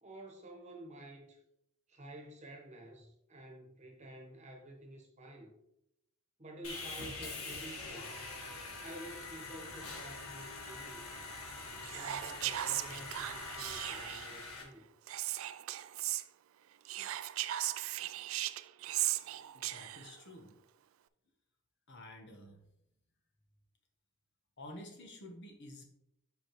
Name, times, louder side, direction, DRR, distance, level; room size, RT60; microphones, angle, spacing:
voice 1, 0.0-1.4 1.9-5.5 6.4-8.2 8.8-11.1 11.9-14.9, right 1 dB, 35° right, 2 dB, 1.3 m, -50 dB
Sawing, 6.6-14.6, left 3 dB, 90° left, 1.6 m, -44 dB
Whispering, 11.8-14.4 15.1-16.2 16.9-20.1, right 15 dB, 70° right, 0.3 m, -37 dB
voice 2, 19.5-20.5 21.9-22.6 24.6-25.8, left 1 dB, 55° left, 3 dB, 1.2 m, -50 dB
7.6 x 5.2 x 3.2 m, 0.80 s
head